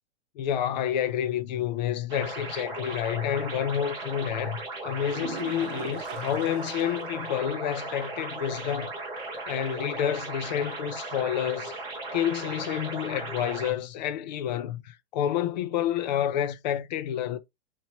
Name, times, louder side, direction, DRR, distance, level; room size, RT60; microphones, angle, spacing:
voice 1, 0.4-8.9 9.5-11.7 12.1-17.4, left 10 dB, 45° left, 0.5 m, -29 dB
sound 1, 2.1-13.7, right 2 dB, 15° right, 0.7 m, -37 dB
sound 2, 5.0-7.3 7.6-7.7 8.2-8.3 12.0-12.1, right 12 dB, 55° right, 0.4 m, -41 dB
2.9 x 2.8 x 3.0 m
supercardioid pair, 160°, 33 cm